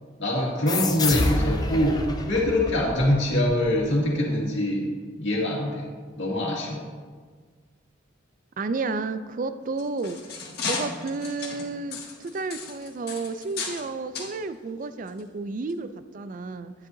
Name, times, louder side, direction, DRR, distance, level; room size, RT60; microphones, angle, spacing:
voice 1, 0.2-4.8 5.2-5.9 6.2-6.9, left 1 dB, 75° left, -3 dB, 2.1 m, -24 dB
sound 1, 0.7-3.9, left 2 dB, 20° left, 0.5 m, -28 dB
voice 2, 8.6-10.2 10.6-16.7, right 3 dB, 45° right, 12 dB, 0.4 m, -31 dB
sound 2, 9.6-13.9 14.1-14.3 15.1-15.2 15.7-15.8, left 4 dB, 55° left, 1.4 m, -34 dB
9.8 x 9.2 x 2.7 m, 1.5 s
head